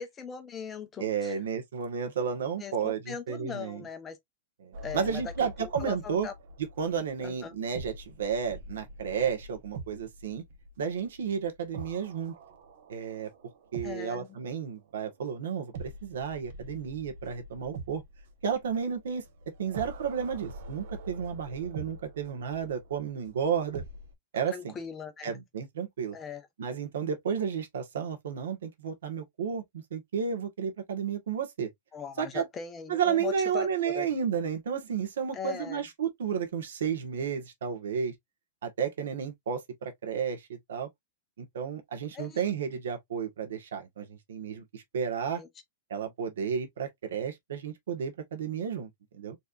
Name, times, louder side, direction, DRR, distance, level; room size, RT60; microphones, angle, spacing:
voice 1, 0.0-1.4 2.6-4.2 4.8-6.3 7.2-7.5 13.8-14.3 24.5-25.3 26.1-26.4 31.9-34.1 35.3-35.8 42.1-42.4 45.4-45.5, left 7 dB, 15° left, 0.8 m, -39 dB
voice 2, 1.0-3.8 4.6-6.3 6.8-10.4 10.8-12.3 12.9-13.3 13.7-18.0 18.4-19.2 19.6-23.8 24.3-24.7 25.2-26.2 26.6-31.7 32.2-32.5 32.9-38.1 38.6-40.9 41.4-45.4 45.9-49.4, right 7 dB, 90° right, 1.5 m, -32 dB
sound 1, 4.7-14.5 15.7-24.1, right 2 dB, 60° right, 1.1 m, -45 dB
4.3 x 3.4 x 2.5 m
supercardioid pair, 160°, 0 cm